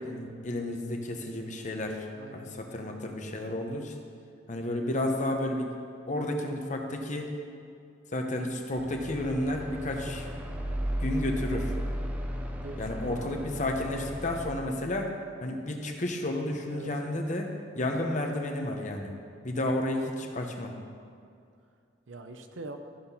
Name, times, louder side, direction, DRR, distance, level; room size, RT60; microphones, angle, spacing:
voice 1, 0.0-2.1 2.3-4.0 4.5-5.7 6.1-7.3 8.1-10.3 11.0-11.7 12.8-15.1 15.4-19.1 19.4-20.7, left 1 dB, 40° left, 3 dB, 0.9 m, -31 dB
voice 2, 2.1-2.5 12.4-13.3 16.7-16.9 22.1-22.8, right 3 dB, 85° right, 7 dB, 0.7 m, -43 dB
sound 1, 8.8-14.5, equal, 10° right, 0.6 m, -35 dB
13.0 x 4.3 x 5.5 m, 2.3 s
head